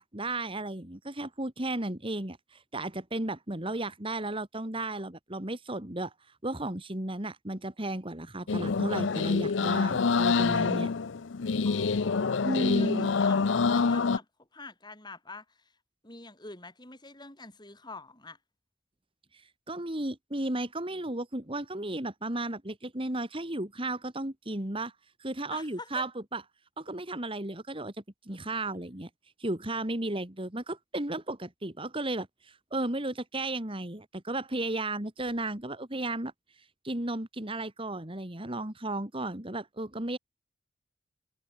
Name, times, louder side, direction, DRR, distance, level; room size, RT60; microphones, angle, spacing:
voice 1, 0.0-6.1 6.4-10.9 12.4-13.1 19.3-24.9 25.2-26.4 26.8-27.9 28.2-29.1 29.4-36.3 36.8-40.2, right 2 dB, 30° right, 2.5 m, -34 dB
sound 1, 8.5-14.2, left 4 dB, 70° left, 0.6 m, -26 dB
voice 2, 11.6-15.7 16.0-18.4 25.5-26.1, left 3 dB, 20° left, 7.2 m, -46 dB
head